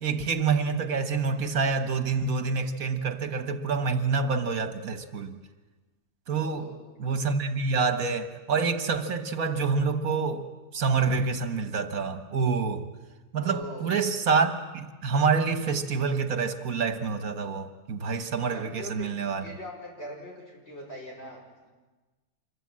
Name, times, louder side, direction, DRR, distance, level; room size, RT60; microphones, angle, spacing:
voice 1, 0.0-5.4 6.3-6.7 7.0-10.4 10.7-12.9 13.3-19.4, right 5 dB, 75° right, 8 dB, 1.7 m, -27 dB
voice 2, 6.4-6.8 13.4-14.1 18.5-21.7, equal, 45° left, 0 dB, 5.8 m, -41 dB
26.5 x 22.5 x 7.6 m, 1.2 s
omnidirectional pair, 1.5 m